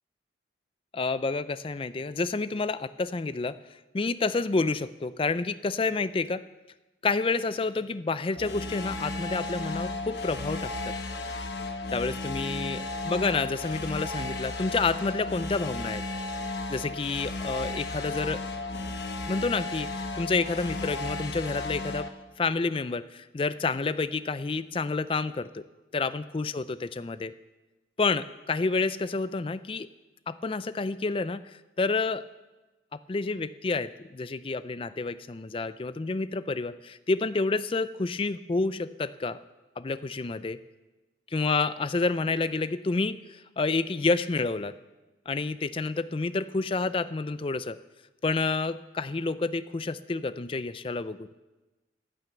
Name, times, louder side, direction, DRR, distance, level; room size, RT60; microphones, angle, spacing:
voice 1, 0.9-3.6 3.9-6.4 7.0-10.9 11.9-16.0 16.7-18.4 19.3-22.1 22.4-25.6 25.9-27.3 28.0-29.9 30.3-31.4 31.8-32.2 33.1-39.4 39.8-40.6 41.3-44.7 45.3-47.8 48.2-51.3, left 3 dB, 30° left, 14 dB, 0.4 m, -29 dB
sound 1, 8.4-22.1, left 2 dB, 65° left, 1.2 m, -34 dB
15.0 x 9.2 x 6.8 m, 1.1 s
head